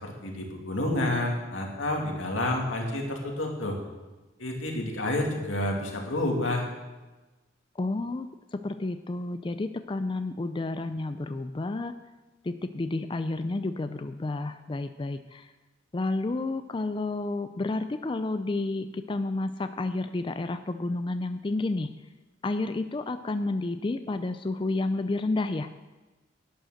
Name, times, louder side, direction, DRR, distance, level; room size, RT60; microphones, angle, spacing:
voice 1, 0.0-3.8 4.4-6.7, left 1 dB, 90° left, 1 dB, 2.5 m, -29 dB
voice 2, 7.8-8.3 8.5-11.9 12.4-15.5 15.9-21.9 22.4-25.7, left 2 dB, 25° left, 10 dB, 0.4 m, -30 dB
11.0 x 9.2 x 6.5 m, 1.2 s
head